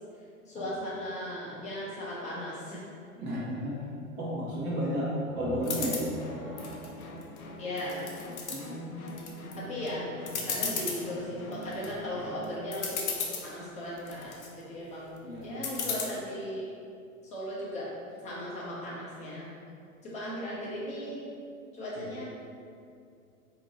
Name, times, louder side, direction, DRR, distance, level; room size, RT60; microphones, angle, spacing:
voice 1, 0.5-2.8 7.6-8.1 9.5-10.0 10.5-13.1 13.4-16.7 17.2-17.9 18.2-19.5 20.0-21.2 21.7-22.2, equal, 15° left, -8 dB, 0.7 m, -37 dB
voice 2, 3.2-3.7 4.2-6.1 8.5-9.7 15.2-16.0 21.9-22.2, equal, 25° right, -6 dB, 0.6 m, -34 dB
sound 1, 5.1-8.7, right 1 dB, ahead, 1.0 m, -43 dB
sound 2, 5.6-6.1 6.6-7.4 7.8-8.6 9.1-9.5 9.9-10.0 10.3-11.0 11.5-11.9 12.4-12.5 12.7-13.5 14.0-14.5 15.6-16.0, left 5 dB, 50° left, 0.7 m, -34 dB
sound 3, 6.2-12.5, left 1 dB, 85° left, 0.5 m, -45 dB
4.3 x 2.8 x 2.9 m, 2.5 s
figure-of-eight pair, 95°, 43 cm